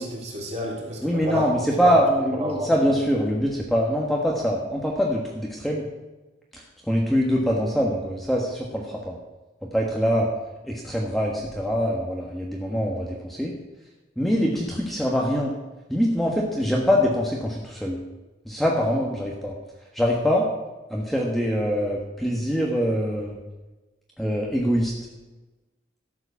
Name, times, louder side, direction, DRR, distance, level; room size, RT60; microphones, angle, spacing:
voice 1, 0.0-1.9 2.3-2.7, equal, 35° right, -3 dB, 3.4 m, -30 dB
voice 2, 1.0-5.9 6.5-9.2 9.7-10.3 10.6-13.5 14.2-15.5 15.9-18.0 18.4-19.5 19.9-20.5 20.9-23.4 24.2-24.9, equal, ahead, -2 dB, 1.3 m, -24 dB
12.5 x 7.9 x 5.8 m, 1.1 s
head